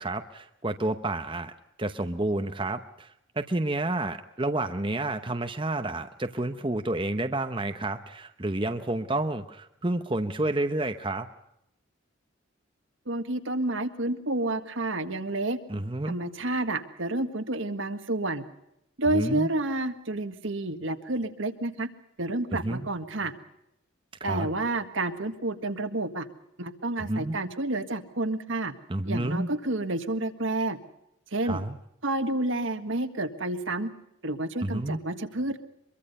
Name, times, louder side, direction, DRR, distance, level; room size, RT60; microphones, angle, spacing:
voice 1, 0.0-1.5 1.8-11.3 15.7-16.2 19.1-19.5 22.5-22.9 24.3-24.5 27.0-27.4 28.9-29.5 31.4-31.8 34.6-35.0, right 2 dB, 25° right, 7 dB, 0.8 m, -30 dB
voice 2, 13.1-15.6 16.1-18.4 19.0-21.9 22.2-23.3 24.2-26.2 26.6-28.7 29.0-30.8 31.3-31.6 32.0-33.9 34.2-35.6, right 2 dB, 65° right, 8 dB, 1.7 m, -29 dB
24.5 x 23.0 x 5.5 m, 0.81 s
head